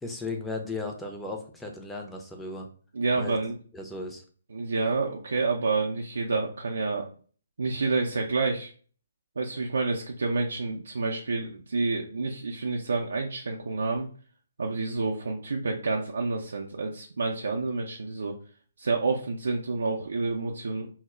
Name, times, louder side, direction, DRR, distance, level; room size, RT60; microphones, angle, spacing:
voice 1, 0.0-2.7 3.2-3.4 3.7-4.2, left 3 dB, 5° left, 1 dB, 0.4 m, -36 dB
voice 2, 2.9-3.6 4.5-7.1 7.6-8.7 9.4-14.1 14.6-18.3 18.8-20.9, right 3 dB, 70° right, 0 dB, 0.4 m, -29 dB
2.1 x 2.0 x 3.6 m, 0.43 s
figure-of-eight pair, 135°, 0 cm